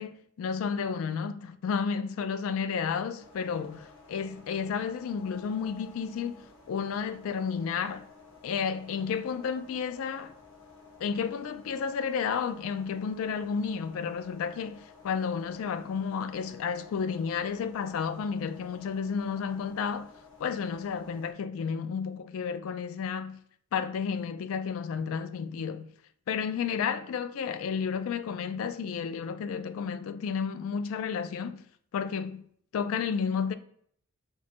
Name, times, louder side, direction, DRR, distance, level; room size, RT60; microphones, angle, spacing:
voice 1, 0.0-8.1 8.4-10.3 11.0-20.1 20.4-23.4 23.7-25.9 26.3-31.6 31.9-32.4 32.7-33.5, left 6 dB, 80° left, 0.3 m, -32 dB
sound 1, 3.2-21.3, left 4 dB, 60° left, 0.8 m, -54 dB
5.9 x 2.1 x 4.2 m
head